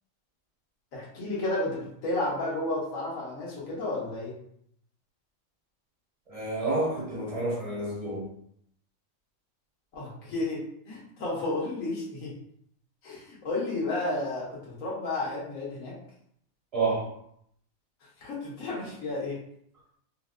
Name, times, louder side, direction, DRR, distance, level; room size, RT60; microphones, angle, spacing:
voice 1, 0.9-4.3 9.9-10.6 10.9-12.3 13.0-15.9 18.2-19.4, left 2 dB, 85° left, -6 dB, 1.4 m, -32 dB
voice 2, 6.3-8.3 16.7-17.1, right 3 dB, 35° right, -5 dB, 0.7 m, -29 dB
3.8 x 2.1 x 2.4 m, 0.70 s
omnidirectional pair, 1.4 m